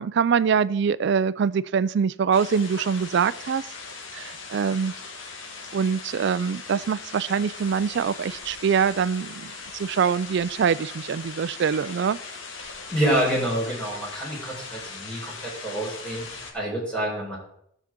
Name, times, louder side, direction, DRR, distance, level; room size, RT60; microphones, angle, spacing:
voice 1, 0.0-3.6 4.1-4.9 5.7-12.2, right 6 dB, 60° right, 17 dB, 0.4 m, -24 dB
sound 1, 2.3-16.5, left 4 dB, 70° left, 1.6 m, -40 dB
voice 2, 12.9-17.4, right 1 dB, 5° left, -6 dB, 4.6 m, -27 dB
13.0 x 7.2 x 3.7 m, 0.70 s
head